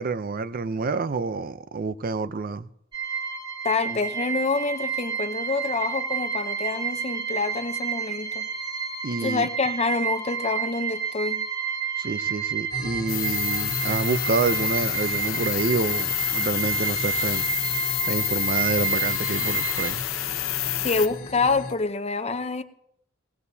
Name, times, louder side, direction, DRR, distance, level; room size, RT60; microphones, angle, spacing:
voice 1, 0.0-2.7 9.0-9.5 12.0-17.4 18.1-20.0, right 4 dB, 45° right, 0.5 m, -28 dB
sound 1, 2.9-19.9, right 7 dB, 25° right, 1.9 m, -30 dB
voice 2, 3.6-8.5 9.2-11.5 20.8-22.6, left 4 dB, 30° left, 0.7 m, -27 dB
sound 2, 12.7-21.7, left 2 dB, 50° left, 1.5 m, -37 dB
sound 3, 13.1-21.1, left 13 dB, 80° left, 0.8 m, -28 dB
20.0 x 18.0 x 2.8 m
head